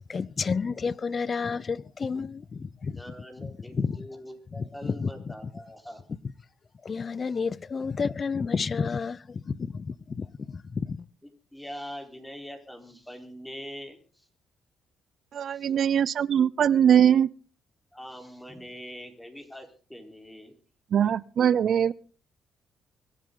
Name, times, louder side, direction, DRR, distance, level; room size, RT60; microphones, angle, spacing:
voice 1, 0.1-3.0 3.4-3.5 3.8-4.0 4.6-5.1 6.8-11.1, left 5 dB, 40° left, 0.7 m, -30 dB
voice 2, 2.9-6.0 7.2-7.4 11.5-14.3 15.5-15.7 17.9-20.6, equal, 10° left, 4.0 m, -43 dB
voice 3, 15.3-17.3 20.9-21.9, right 9 dB, 60° right, 0.6 m, -21 dB
24.5 x 10.5 x 3.9 m
cardioid pair, 90°, 0 cm